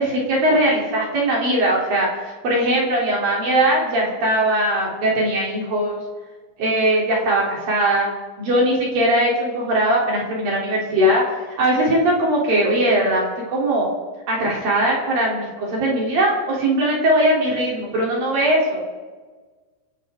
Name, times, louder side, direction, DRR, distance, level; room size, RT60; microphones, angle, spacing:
voice 1, 0.0-6.0 6.6-8.1 8.4-13.9 14.3-18.8, right 1 dB, 45° right, -3 dB, 4.6 m, -20 dB
28.5 x 12.0 x 3.7 m, 1.4 s
omnidirectional pair, 5.9 m